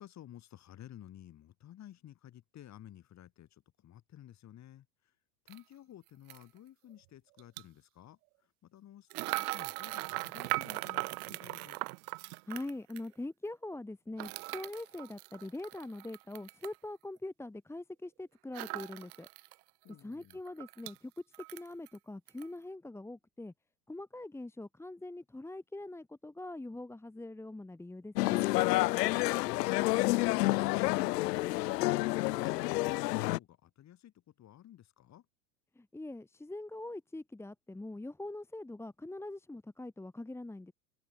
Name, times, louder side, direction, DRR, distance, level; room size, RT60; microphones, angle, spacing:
voice 1, 0.0-5.1 5.4-11.8 19.8-20.4 29.1-35.3, left 12 dB, 35° left, 7.6 m, -54 dB
sound 1, 5.5-5.6 6.3-6.4 7.4-7.6 9.1-13.1 14.2-16.8 18.5-19.5 19.9-20.0 20.3-21.0 21.3-22.0 22.3-22.5, right 24 dB, 65° right, 2.5 m, -39 dB
voice 2, 12.5-19.3 20.0-21.1 21.5-23.5 23.9-28.4 35.8-40.7, left 2 dB, 5° left, 2.0 m, -43 dB
sound 2, 28.2-33.4, left 19 dB, 75° left, 1.0 m, -29 dB
supercardioid pair, 125°, 48 cm